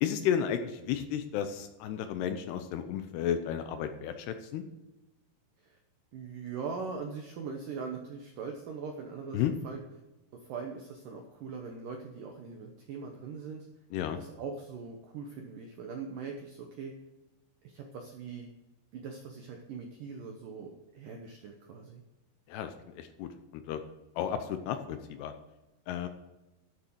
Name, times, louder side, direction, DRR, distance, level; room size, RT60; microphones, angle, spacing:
voice 1, 0.0-4.6 9.3-9.5 13.9-14.2 22.5-23.8 24.2-25.3 25.9-26.1, left 9 dB, 75° left, 8 dB, 2.5 m, -33 dB
voice 2, 6.1-9.8 10.4-13.7 14.1-16.9 17.6-18.5 18.9-22.0, right 5 dB, 85° right, 3 dB, 1.9 m, -41 dB
12.0 x 7.1 x 6.2 m, 1.0 s
omnidirectional pair, 5.3 m